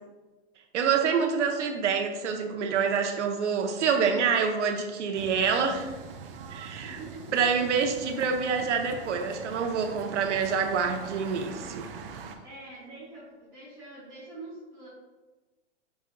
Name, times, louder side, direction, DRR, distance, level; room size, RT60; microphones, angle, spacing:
voice 1, 0.7-5.9 6.5-7.0 7.3-11.9, right 6 dB, 80° right, 4 dB, 0.8 m, -27 dB
sound 1, 5.1-12.4, right 6 dB, 55° right, 0.4 m, -43 dB
voice 2, 6.8-7.7 12.4-14.9, right 2 dB, 10° left, -13 dB, 0.5 m, -44 dB
5.9 x 2.7 x 2.5 m, 1.2 s
hypercardioid pair, 175°, 35 cm